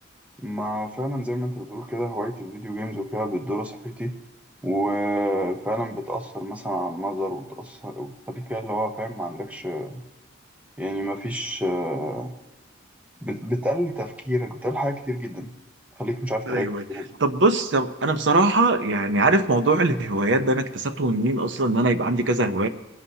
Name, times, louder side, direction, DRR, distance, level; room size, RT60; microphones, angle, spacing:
voice 1, 0.4-4.1 4.6-10.0 10.8-12.3 13.2-15.5 16.0-17.1, equal, 5° right, 5 dB, 0.8 m, -29 dB
voice 2, 16.5-16.8 17.2-22.7, right 2 dB, 60° right, 9 dB, 0.8 m, -21 dB
21.0 x 11.0 x 2.8 m, 1.1 s
head